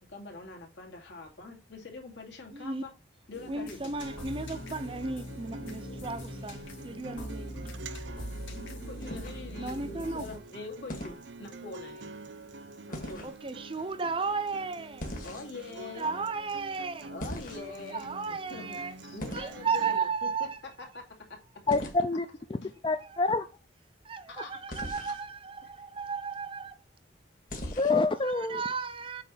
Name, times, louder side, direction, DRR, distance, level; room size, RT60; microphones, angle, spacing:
voice 1, 0.0-2.9 3.3-3.9 8.7-12.1 12.9-13.6 15.2-16.1 17.1-20.5 20.8-21.1 22.6-22.7 24.3-24.6 25.6-25.7, left 3 dB, 75° left, 2.4 m, -44 dB
voice 2, 2.5-2.8 3.5-7.6 9.6-10.4 13.2-15.1 15.8-17.1 17.7-18.9 19.3-20.6 24.0-26.8 28.3-29.2, right 4 dB, 30° right, 0.5 m, -34 dB
sound 1, 3.3-10.4, equal, 90° left, 2.6 m, -42 dB
Acoustic guitar, 4.0-20.0, right 2 dB, 75° right, 0.7 m, -46 dB
sound 2, 9.0-9.7 10.9-11.2 12.9-13.3 15.0-15.7 17.2-17.9 19.2-19.6 21.7-22.0 24.7-25.2 27.5-28.1, equal, 45° left, 1.8 m, -40 dB
voice 3, 21.7-22.6 22.8-23.5 27.8-28.6, left 3 dB, 25° left, 0.4 m, -27 dB
8.2 x 3.2 x 5.5 m
head